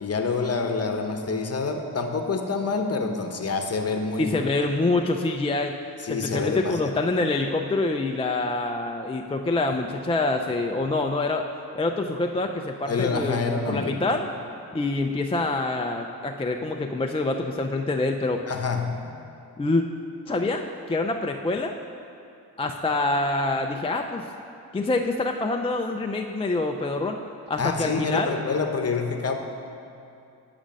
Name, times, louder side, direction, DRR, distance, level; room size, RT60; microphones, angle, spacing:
voice 1, 0.0-4.4 6.0-7.0 12.9-14.0 18.5-19.1 27.6-29.3, left 4 dB, 35° left, 5 dB, 0.9 m, -27 dB
voice 2, 4.2-5.7 6.1-11.5 11.7-14.3 14.7-18.4 19.6-19.8 20.3-21.7 22.6-24.2 24.7-27.2 27.5-28.4, left 2 dB, 15° left, 3 dB, 0.3 m, -26 dB
8.6 x 5.1 x 5.2 m, 2.5 s
cardioid pair, 60°, 42 cm